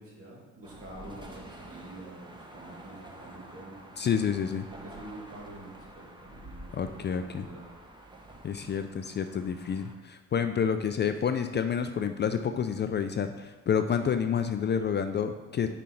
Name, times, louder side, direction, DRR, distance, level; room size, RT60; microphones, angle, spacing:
voice 1, 0.0-3.8 4.7-7.7 15.6-15.7, right 2 dB, 50° right, -3 dB, 2.1 m, -47 dB
sound 1, 0.6-9.9, right 1 dB, 15° right, 1.1 m, -48 dB
voice 2, 4.0-4.7 6.7-7.4 8.4-15.7, left 7 dB, 35° left, 8 dB, 0.4 m, -29 dB
5.4 x 5.0 x 4.4 m, 1.2 s
cardioid pair, 90°, 30 cm